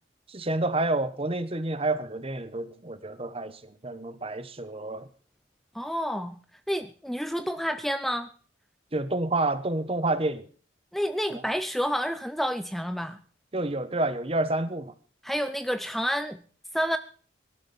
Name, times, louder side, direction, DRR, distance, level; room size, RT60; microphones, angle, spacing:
voice 1, 0.3-5.1 8.9-10.4 11.3-11.4 13.5-14.9, right 2 dB, 30° right, 1.2 m, -29 dB
voice 2, 5.7-6.4 6.7-8.3 10.9-13.2 15.2-16.4 16.7-17.0, equal, ahead, 0.6 m, -29 dB
21.5 x 12.0 x 4.4 m
head